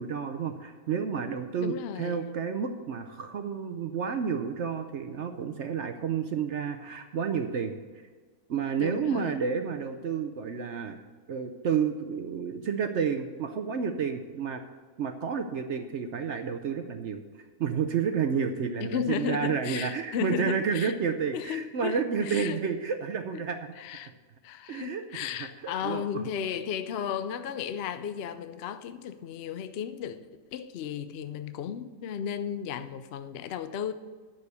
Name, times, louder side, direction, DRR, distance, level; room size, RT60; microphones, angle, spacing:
voice 1, 0.0-7.8 8.5-11.0 11.3-14.6 15.0-23.7 24.7-26.0, right 6 dB, 60° right, 7 dB, 0.8 m, -30 dB
voice 2, 1.6-2.2 8.8-9.4 18.8-20.9 21.3-22.6 23.8-24.1 24.4-30.2 30.5-33.9, left 8 dB, 65° left, 11 dB, 0.6 m, -34 dB
9.7 x 6.9 x 6.6 m, 1.5 s
omnidirectional pair, 1.7 m